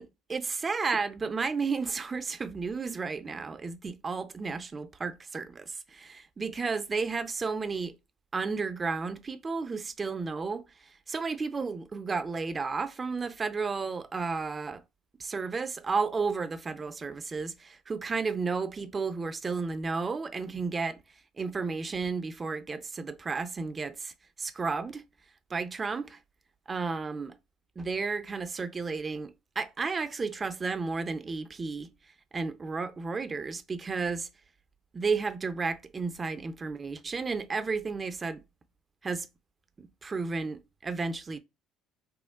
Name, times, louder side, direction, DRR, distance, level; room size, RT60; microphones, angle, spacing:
voice 1, 0.0-8.0 8.3-14.8 15.2-21.0 21.4-25.0 25.5-26.2 26.7-27.4 27.8-31.9 32.3-34.3 34.9-38.4 39.0-39.3 39.8-41.4, right 4 dB, 30° right, 0.4 m, -33 dB
2.9 x 2.1 x 3.5 m
supercardioid pair, 90°, 0 cm